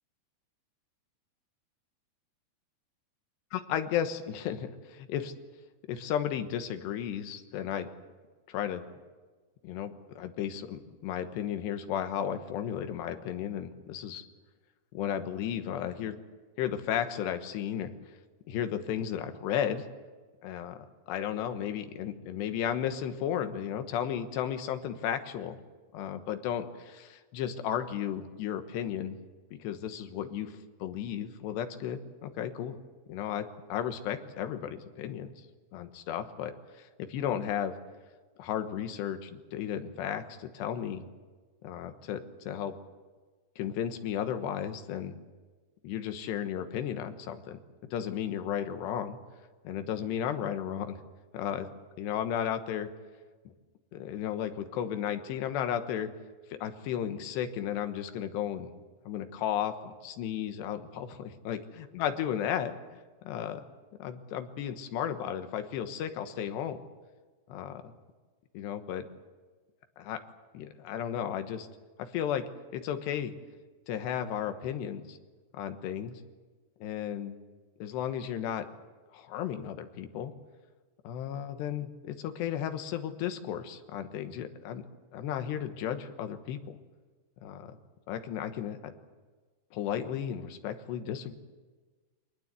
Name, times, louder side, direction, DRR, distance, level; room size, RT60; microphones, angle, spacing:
voice 1, 3.5-5.3 5.9-7.9 8.5-8.8 9.6-14.2 14.9-16.2 16.6-17.9 18.5-19.9 20.4-25.6 25.9-29.2 29.5-32.8 33.1-35.3 35.7-37.7 38.4-41.1 41.6-42.7 43.6-45.2 45.8-47.6 47.9-49.2 49.7-51.0 51.3-51.7 52.0-52.9 53.9-56.1 56.5-58.7 59.1-63.7 64.0-66.8 67.5-67.8 68.6-69.1 70.0-70.2 70.5-71.7 72.1-72.4 72.7-73.3 73.9-75.2 75.5-76.2 76.8-77.4 77.8-78.7 79.1-80.3 81.1-84.8 85.1-86.8 87.4-87.8 88.1-88.9 89.7-91.3, left 9 dB, 80° left, 8 dB, 3.4 m, -34 dB
24.5 x 19.5 x 8.2 m, 1.4 s
omnidirectional pair, 4.9 m